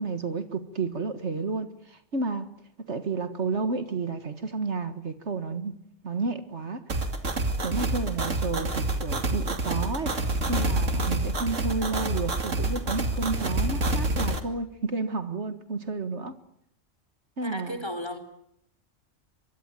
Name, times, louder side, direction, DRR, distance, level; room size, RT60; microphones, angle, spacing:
voice 1, 0.0-2.5 2.8-6.8 7.6-10.2 10.5-16.3 17.4-17.8, right 3 dB, 65° right, 2.0 m, -31 dB
sound 1, 6.9-14.4, right 2 dB, 85° right, 2.8 m, -27 dB
voice 2, 17.4-18.2, left 1 dB, 20° left, 4.1 m, -34 dB
24.0 x 23.5 x 9.1 m
omnidirectional pair, 1.3 m